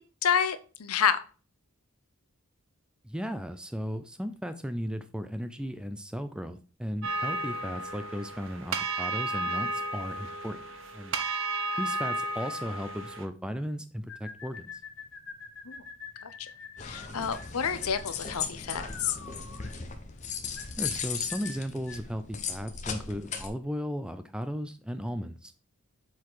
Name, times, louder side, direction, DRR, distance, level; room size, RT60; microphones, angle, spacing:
voice 1, 0.2-1.2 15.7-15.8 16.2-16.5 16.8-19.2, left 7 dB, 85° left, 12 dB, 0.7 m, -29 dB
voice 2, 3.0-10.6 10.9-11.2 11.8-14.8 20.7-25.5, equal, 5° right, 10 dB, 0.5 m, -36 dB
sound 1, 7.0-13.3, right 1 dB, 60° right, 0.9 m, -33 dB
sound 2, 14.1-22.1, left 5 dB, 55° left, 1.2 m, -46 dB
sound 3, 16.8-23.5, left 6 dB, 35° left, 0.9 m, -37 dB
7.2 x 4.1 x 4.7 m, 0.36 s
head